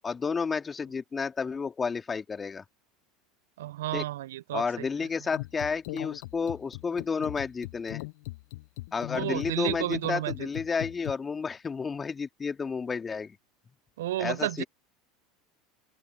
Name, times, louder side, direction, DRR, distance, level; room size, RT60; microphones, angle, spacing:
voice 1, 0.0-2.6 3.9-4.0 4.5-8.0 8.9-13.4 14.2-14.6, left 5 dB, 25° left, 2.3 m, -31 dB
voice 2, 3.6-4.9 9.2-10.5 14.0-14.6, right 14 dB, 75° right, 0.4 m, -32 dB
sound 1, 5.3-11.1, left 22 dB, 65° left, 0.5 m, -39 dB
open air
hypercardioid pair, 80°, 0 cm